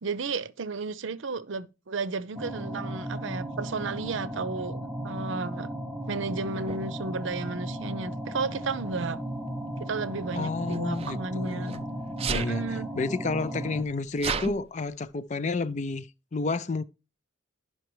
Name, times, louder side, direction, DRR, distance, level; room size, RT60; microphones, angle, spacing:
voice 1, 0.0-5.7 6.1-9.2 9.8-11.8 12.3-12.9, right 4 dB, 70° right, 0.6 m, -33 dB
sound 1, 2.4-13.8, right 1 dB, 15° right, 0.9 m, -36 dB
Sneeze, 6.7-6.8 7.9-8.3 10.3-11.8 12.2-12.6 13.3-13.4 13.6-14.5, right 5 dB, 30° right, 0.5 m, -33 dB
voice 2, 10.3-11.9 12.2-12.6 13.0-16.1 16.3-16.8, left 3 dB, 35° left, 0.4 m, -30 dB
11.5 x 5.6 x 3.1 m
head